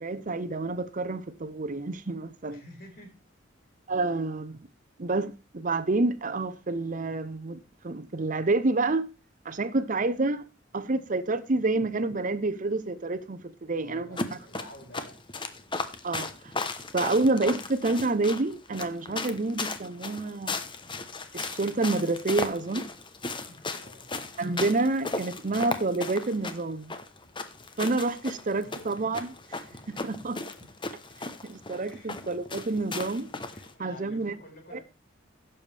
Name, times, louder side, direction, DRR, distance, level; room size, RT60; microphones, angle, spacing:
voice 1, 0.0-2.6 3.9-4.6 5.0-9.1 9.4-10.4 10.7-14.2 16.0-16.5 16.9-20.6 21.3-22.9 24.4-26.9 27.8-29.6 29.9-30.4 31.4-33.3 33.8-34.3 34.7-34.8, right 2 dB, 45° right, 0.7 m, -28 dB
voice 2, 2.5-3.2 13.8-15.2 23.3-24.1 28.1-29.1 29.5-30.1 31.8-32.1 33.5-34.8, left 1 dB, 50° left, 4.5 m, -50 dB
sound 1, 14.2-33.7, left 3 dB, 25° left, 1.0 m, -36 dB
16.0 x 7.0 x 3.4 m
head